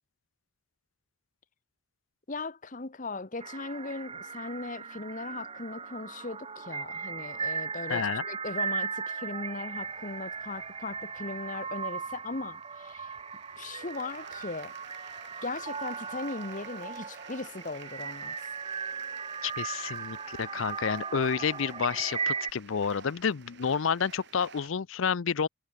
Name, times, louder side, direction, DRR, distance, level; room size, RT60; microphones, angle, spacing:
voice 1, 2.3-13.1 13.6-14.7 15.4-18.4, left 3 dB, 35° left, 1.1 m, -38 dB
sound 1, 3.4-22.5, right 5 dB, 25° right, 1.0 m, -37 dB
voice 2, 7.9-8.2 19.4-25.5, left 6 dB, 65° left, 0.5 m, -30 dB
sound 2, 9.7-24.7, right 6 dB, 55° right, 2.2 m, -51 dB
head